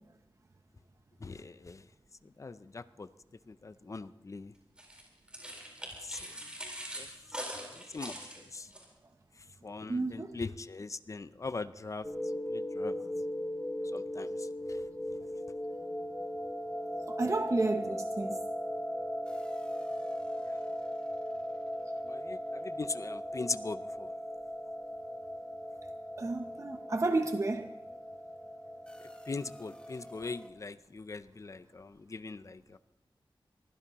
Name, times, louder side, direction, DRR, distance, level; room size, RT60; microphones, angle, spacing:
voice 1, 1.2-1.8 2.2-3.1 3.5-4.5 6.0-6.4 7.0-7.1 7.7-8.2 8.5-8.7 9.6-12.1 12.5-13.0 13.9-14.8 22.0-24.1 29.3-32.8, left 3 dB, 35° left, 0.5 m, -41 dB
sound 1, 4.8-8.8, equal, 10° right, 4.3 m, -43 dB
voice 2, 9.9-10.4 17.1-18.4 26.2-27.7, right 2 dB, 35° right, 0.7 m, -31 dB
sound 2, 12.0-30.5, equal, 10° left, 1.5 m, -38 dB
23.5 x 15.5 x 3.0 m
wide cardioid pair, 110°, 9 cm